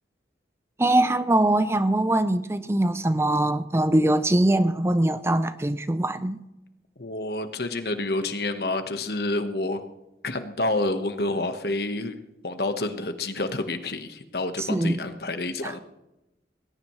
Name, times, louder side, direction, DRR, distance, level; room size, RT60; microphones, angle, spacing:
voice 1, 0.8-6.4 14.6-15.0 15.6-15.7, right 1 dB, 15° right, 0.5 m, -22 dB
voice 2, 7.0-9.8 10.2-12.2 12.4-15.8, left 2 dB, 60° left, 1.3 m, -28 dB
20.0 x 18.0 x 3.2 m
head